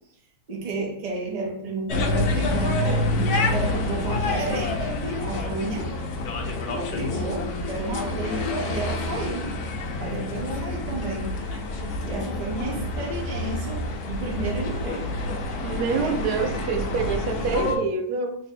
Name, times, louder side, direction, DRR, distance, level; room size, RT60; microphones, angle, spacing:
voice 1, 0.5-5.9 6.7-9.5 10.0-11.4 12.0-15.2 15.9-16.6, right 3 dB, 40° right, 0.7 m, -32 dB
sound 1, 1.9-17.8, left 2 dB, 80° left, 1.1 m, -28 dB
voice 2, 15.6-18.4, right 5 dB, 85° right, 1.1 m, -26 dB
3.3 x 2.0 x 4.1 m
omnidirectional pair, 1.6 m